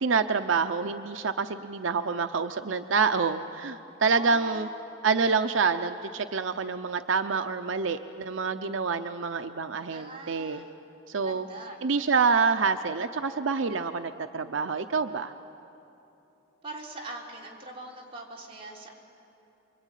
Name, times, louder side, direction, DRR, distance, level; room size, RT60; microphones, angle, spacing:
voice 1, 0.0-4.7 5.0-10.6 11.1-11.5 11.8-15.3, right 5 dB, 80° right, 8 dB, 0.7 m, -27 dB
voice 2, 4.1-4.8 9.9-10.7 11.2-12.0 16.6-18.9, right 2 dB, 30° right, -3 dB, 3.9 m, -42 dB
28.0 x 23.0 x 9.2 m, 3.0 s
head